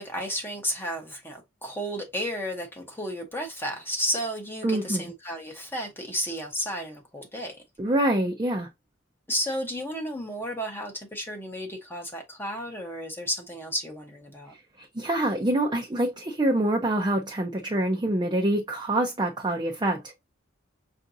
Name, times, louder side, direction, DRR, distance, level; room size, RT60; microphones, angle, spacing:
voice 1, 0.0-7.6 9.3-14.5, equal, 10° left, 0.8 m, -32 dB
voice 2, 4.6-5.1 7.8-8.7 14.8-20.0, right 1 dB, 20° right, 0.6 m, -25 dB
5.7 x 2.6 x 2.6 m
head